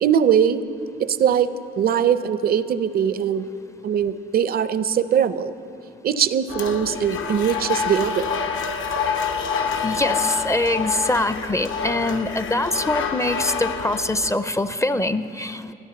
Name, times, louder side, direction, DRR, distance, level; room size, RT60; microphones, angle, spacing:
voice 1, 0.0-0.6 1.0-1.5 1.8-3.5 3.8-5.5 6.0-8.3, right 8 dB, 50° right, 13 dB, 0.5 m, -21 dB
sound 1, 6.5-14.3, left 6 dB, 75° left, 0.9 m, -27 dB
voice 2, 9.6-15.7, left 1 dB, 15° left, 12 dB, 0.4 m, -24 dB
13.0 x 10.5 x 6.9 m, 2.7 s
cardioid pair, 90°, 20 cm